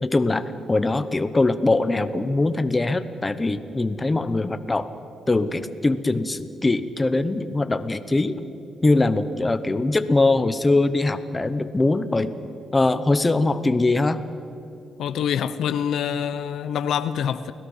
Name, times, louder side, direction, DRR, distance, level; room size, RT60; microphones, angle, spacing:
voice 1, 0.0-4.9 5.3-8.4 8.8-12.3 12.7-14.2, left 2 dB, 15° left, 0.9 m, -22 dB
voice 2, 15.0-17.5, left 8 dB, 75° left, 0.8 m, -25 dB
29.5 x 18.0 x 5.7 m
cardioid pair, 125°, 0 cm